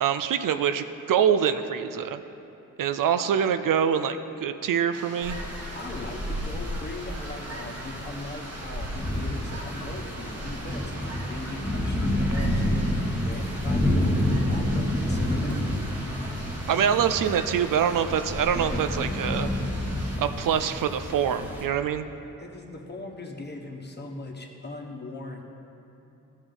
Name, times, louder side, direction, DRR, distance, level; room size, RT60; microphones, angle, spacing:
voice 1, 0.0-2.2 2.8-5.4 16.7-19.5 20.2-22.0, right 8 dB, 70° right, 9 dB, 0.5 m, -25 dB
sound 1, 4.9-20.2, right 2 dB, 45° right, 1.2 m, -42 dB
sound 2, 5.2-21.7, left 1 dB, 5° right, 1.3 m, -29 dB
voice 2, 5.7-15.7 22.4-25.4, left 2 dB, 30° left, 1 dB, 1.2 m, -39 dB
14.5 x 6.2 x 3.9 m, 2.9 s
cardioid pair, 80°, 34 cm